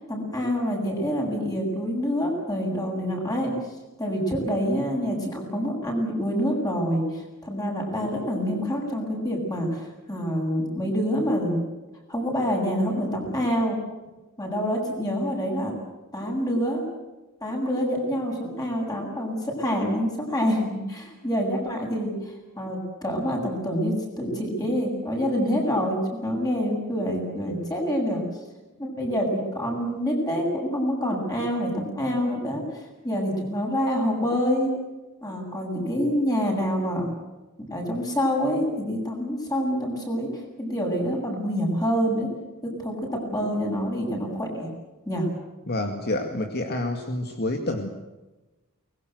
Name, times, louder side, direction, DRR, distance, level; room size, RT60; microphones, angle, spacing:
voice 1, 0.1-3.5 4.0-11.6 12.1-13.8 14.4-15.7 16.1-16.8 17.4-22.1 22.6-28.2 28.8-32.6 33.0-34.7 35.2-37.1 37.6-40.3 40.6-42.3 42.6-42.9 43.3-44.7 45.1-45.3, equal, 20° left, 1 dB, 7.9 m, -26 dB
voice 2, 45.7-47.9, left 1 dB, 50° left, 5 dB, 2.2 m, -28 dB
24.0 x 21.5 x 8.1 m, 1.1 s
head